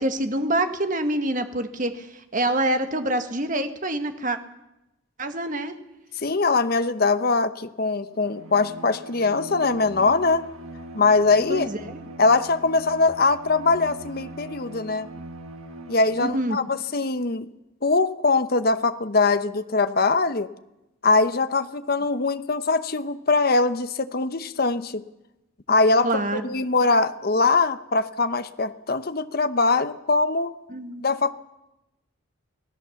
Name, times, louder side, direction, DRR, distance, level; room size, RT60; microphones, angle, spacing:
voice 1, 0.0-4.4 5.2-5.7 11.5-12.1 16.2-16.6 26.0-26.4 30.7-31.0, right 1 dB, 40° right, 7 dB, 1.5 m, -26 dB
voice 2, 6.2-10.4 10.9-11.7 12.2-15.1 15.9-17.5 17.8-20.5 21.0-25.0 25.7-26.1 26.4-30.5 31.0-31.3, left 3 dB, 45° left, 11 dB, 0.9 m, -22 dB
Bowed string instrument, 8.1-16.7, right 2 dB, 80° right, 1.8 m, -41 dB
25.0 x 16.5 x 7.1 m, 0.94 s
head